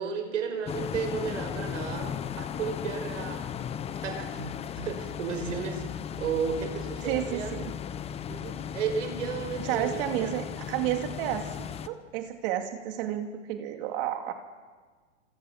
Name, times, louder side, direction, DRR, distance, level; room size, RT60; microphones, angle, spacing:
voice 1, 0.0-3.5 4.0-5.8 6.2-7.5 8.3-10.3, right 6 dB, 80° right, 6 dB, 5.9 m, -33 dB
sound 1, 0.6-11.9, left 8 dB, 15° left, 0.9 m, -36 dB
voice 2, 7.0-7.7 9.6-11.5 11.8-14.3, right 11 dB, 50° right, 6 dB, 2.6 m, -31 dB
28.0 x 27.0 x 7.2 m, 1.5 s
hypercardioid pair, 135°, 36 cm